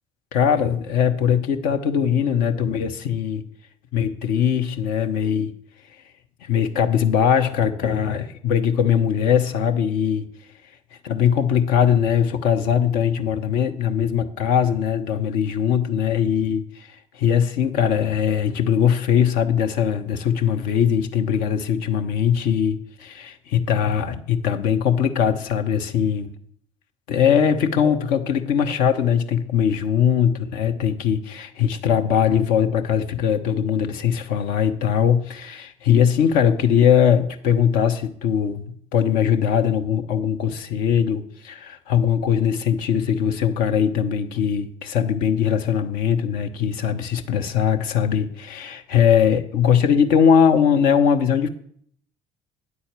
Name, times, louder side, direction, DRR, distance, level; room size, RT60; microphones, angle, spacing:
voice 1, 0.3-3.4 3.9-5.5 6.5-10.3 11.0-16.9 17.1-26.3 27.1-38.7 38.9-51.5, left 8 dB, 60° left, 6 dB, 0.8 m, -20 dB
9.5 x 4.2 x 7.3 m, 0.64 s
figure-of-eight pair, 50°, 17 cm